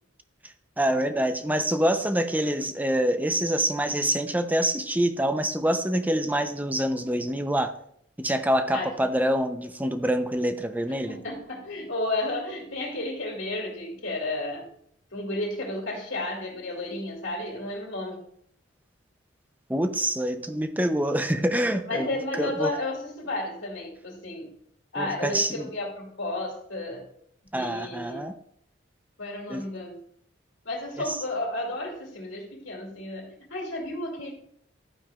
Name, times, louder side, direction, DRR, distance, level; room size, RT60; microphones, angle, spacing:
voice 1, 0.8-7.7 8.2-11.2 19.7-22.7 25.0-25.7 27.5-28.3 29.5-29.6 31.1-31.2, right 1 dB, 10° right, 8 dB, 0.7 m, -26 dB
voice 2, 11.1-14.7 15.1-18.2 21.8-24.5 24.9-27.0 27.5-28.3 29.2-30.0 30.6-34.3, left 2 dB, 90° left, -1 dB, 2.6 m, -32 dB
12.0 x 9.2 x 2.4 m, 0.68 s
head